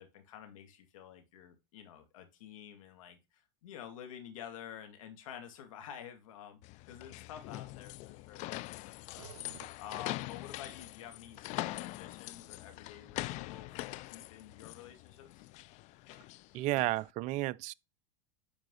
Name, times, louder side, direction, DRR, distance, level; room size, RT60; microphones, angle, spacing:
voice 1, 0.0-6.6 6.9-9.3 9.8-15.4, left 9 dB, 75° left, 2.2 m, -50 dB
sound 1, 6.6-17.0, left 19 dB, 45° left, 0.4 m, -43 dB
sound 2, 9.2-10.6, right 10 dB, 90° right, 0.6 m, -55 dB
voice 2, 16.5-17.7, right 17 dB, 45° right, 0.4 m, -32 dB
10.5 x 5.1 x 4.0 m
hypercardioid pair, 100°, 17 cm